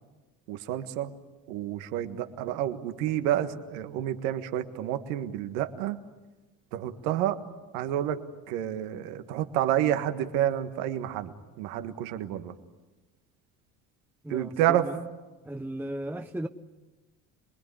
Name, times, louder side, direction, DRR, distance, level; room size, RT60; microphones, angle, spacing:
voice 1, 0.5-1.1 1.5-6.0 6.7-7.4 7.7-8.2 8.5-11.3 11.6-12.5 14.3-14.9, right 11 dB, 90° right, 1.7 m, -29 dB
voice 2, 14.2-15.0 15.4-16.5, right 1 dB, 5° right, 0.9 m, -36 dB
27.0 x 21.0 x 9.9 m
supercardioid pair, 90°, 39 cm